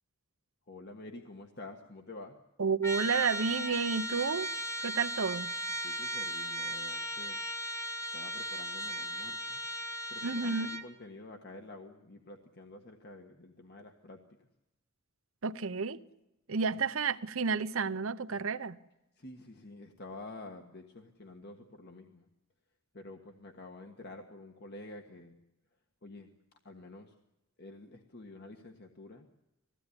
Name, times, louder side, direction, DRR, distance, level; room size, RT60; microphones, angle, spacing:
voice 1, 0.7-2.4 5.8-7.4 8.1-9.6 10.1-14.2 19.2-22.3 22.9-25.4 26.0-26.3 26.6-27.1 27.6-29.3, left 2 dB, 50° left, 1.5 m, -49 dB
voice 2, 2.6-4.5 4.8-5.5 10.2-10.7 15.4-16.0 16.5-18.8, right 5 dB, 70° right, 0.9 m, -31 dB
Trumpet, 2.8-10.9, right 1 dB, 15° left, 1.1 m, -37 dB
21.0 x 16.5 x 9.8 m
head